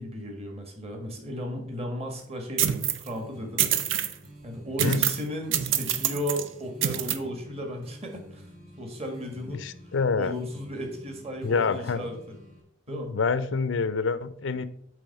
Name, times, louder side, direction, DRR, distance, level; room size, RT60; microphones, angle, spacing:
voice 1, 0.0-3.7 4.4-8.4 8.8-9.6 10.2-12.2 12.9-13.1, equal, 35° right, 3 dB, 1.4 m, -35 dB
sound 1, 2.6-3.1 3.6-4.1 4.8-5.3 5.5-6.4 6.8-7.2, right 9 dB, 90° right, 0.6 m, -26 dB
sound 2, 3.0-12.6, equal, 50° right, 2.1 m, -49 dB
voice 2, 9.5-10.3 11.4-12.1 12.9-14.7, left 5 dB, 90° left, 15 dB, 0.5 m, -27 dB
8.4 x 3.5 x 5.3 m, 0.69 s
head